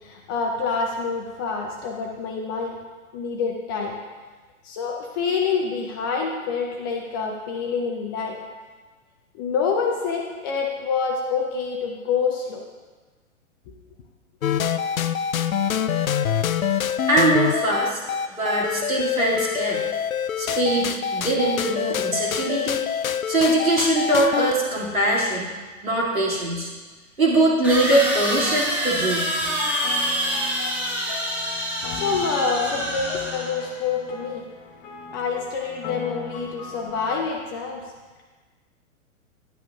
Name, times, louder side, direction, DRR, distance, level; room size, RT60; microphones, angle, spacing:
voice 1, 0.0-2.8 3.1-4.0 4.6-8.4 9.3-12.6 31.9-34.5 35.1-37.8, left 5 dB, 15° left, 1 dB, 0.4 m, -27 dB
sound 1, 14.4-24.5, left 8 dB, 80° left, 0.5 m, -25 dB
voice 2, 17.1-18.0 18.3-19.8 20.4-22.8 23.3-25.5 25.8-26.7 27.2-29.3, right 2 dB, 80° right, -4 dB, 2.3 m, -22 dB
sound 2, 27.6-33.8, equal, 5° right, 1.2 m, -26 dB
sound 3, 29.4-37.3, left 5 dB, 35° left, 1.0 m, -38 dB
10.5 x 9.4 x 2.3 m, 1.3 s
figure-of-eight pair, 110°, 41 cm